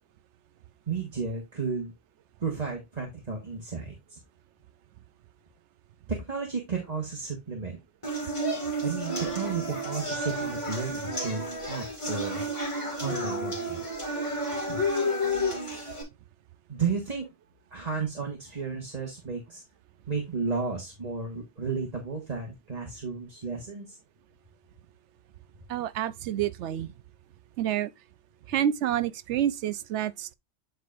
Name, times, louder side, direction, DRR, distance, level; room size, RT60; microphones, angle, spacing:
voice 1, 0.9-1.9 2.4-4.2 6.1-7.8 8.8-12.4 13.0-14.0 14.7-14.8 16.7-17.3 17.7-19.6 20.1-24.0, right 5 dB, 35° right, 1.4 m, -33 dB
sound 1, 8.0-16.0, equal, 25° left, 2.3 m, -31 dB
voice 2, 25.7-26.9 27.6-27.9 28.5-30.3, right 11 dB, 80° right, 0.9 m, -28 dB
9.3 x 4.6 x 2.5 m
omnidirectional pair, 1.2 m